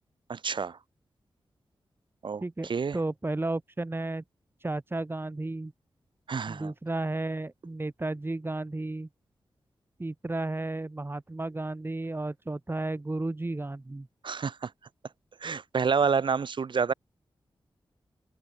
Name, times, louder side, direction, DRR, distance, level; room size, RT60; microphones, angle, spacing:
voice 1, 0.3-0.8 2.2-3.0 6.3-6.7 14.2-14.7 15.4-16.9, right 5 dB, 65° right, 1.5 m, -28 dB
voice 2, 2.4-4.2 4.6-5.7 6.5-9.1 10.0-14.1, right 2 dB, 25° right, 4.1 m, -33 dB
open air
cardioid pair, 70°, 9 cm